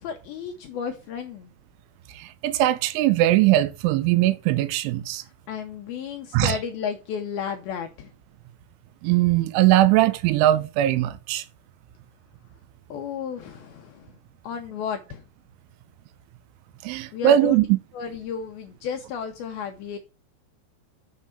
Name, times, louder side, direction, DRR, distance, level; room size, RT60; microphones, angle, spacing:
voice 1, 0.0-1.5 5.2-8.1 12.9-14.1 14.4-15.2 17.1-17.6 17.9-20.0, left 7 dB, 80° left, 2.2 m, -33 dB
voice 2, 2.2-5.2 6.3-6.6 9.0-11.4 16.8-17.6, right 13 dB, 90° right, 3.1 m, -20 dB
7.1 x 5.6 x 6.4 m
omnidirectional pair, 5.3 m